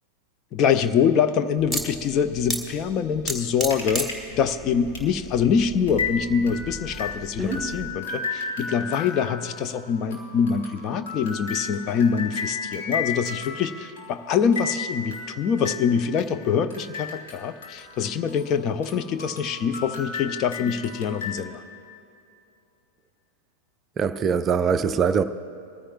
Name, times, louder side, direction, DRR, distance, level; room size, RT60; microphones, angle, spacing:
voice 1, 0.5-21.6, left 7 dB, 35° left, 0.6 m, -24 dB
sound 1, 1.6-7.9, right 1 dB, 10° left, 1.4 m, -34 dB
sound 2, 3.7-4.2 4.5-4.6 4.9-5.1 5.4-5.5 5.9-18.6 18.8-21.4, left 5 dB, 55° left, 2.2 m, -34 dB
voice 2, 24.0-25.2, right 6 dB, 25° right, 0.4 m, -22 dB
22.5 x 14.5 x 2.4 m
figure-of-eight pair, 90°, 0 cm